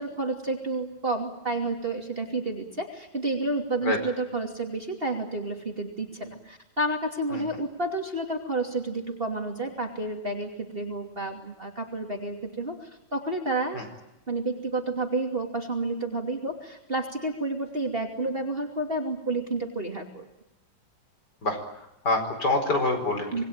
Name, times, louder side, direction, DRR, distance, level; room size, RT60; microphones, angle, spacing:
voice 1, 0.0-13.8 14.3-20.2 23.3-23.4, right 2 dB, 30° right, 2 dB, 2.9 m, -30 dB
voice 2, 22.0-23.4, left 2 dB, 60° left, 6 dB, 5.2 m, -25 dB
26.5 x 21.5 x 9.0 m, 0.89 s
omnidirectional pair, 2.1 m